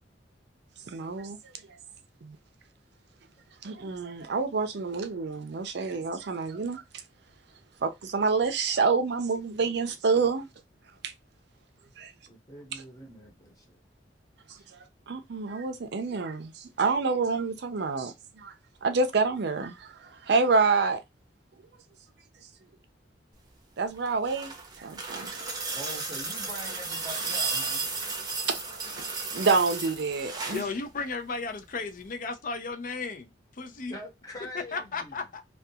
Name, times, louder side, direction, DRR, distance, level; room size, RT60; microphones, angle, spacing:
voice 1, 0.9-1.4 2.2-2.4 3.6-6.8 7.8-10.4 11.0-11.1 12.0-12.1 14.8-18.5 18.8-21.0 23.8-25.4 28.5-28.8 29.3-30.7, right 4 dB, 65° right, 0.5 m, -28 dB
voice 2, 12.3-13.7 25.7-27.8 33.9-35.3, equal, 20° left, 0.9 m, -43 dB
sound 1, 23.9-30.7 32.0-32.1, right 4 dB, 20° right, 0.7 m, -34 dB
voice 3, 30.5-34.0 34.5-35.4, left 4 dB, 50° left, 0.5 m, -34 dB
2.3 x 2.3 x 2.7 m
head